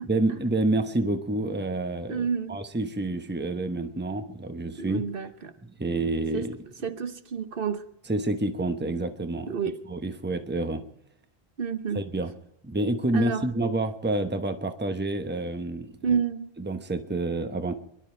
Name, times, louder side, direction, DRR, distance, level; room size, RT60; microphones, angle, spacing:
voice 1, 0.0-5.0 5.6-6.6 8.1-9.6 9.9-10.8 11.9-12.3 12.6-16.2 16.6-17.7, right 2 dB, 10° right, 8 dB, 0.9 m, -28 dB
voice 2, 2.1-2.6 4.8-5.5 6.3-6.5 6.8-7.8 9.5-9.8 11.6-12.0 13.1-13.4 16.0-16.5, right 6 dB, 60° right, 10 dB, 1.1 m, -29 dB
25.5 x 12.0 x 4.5 m, 0.78 s
omnidirectional pair, 1.0 m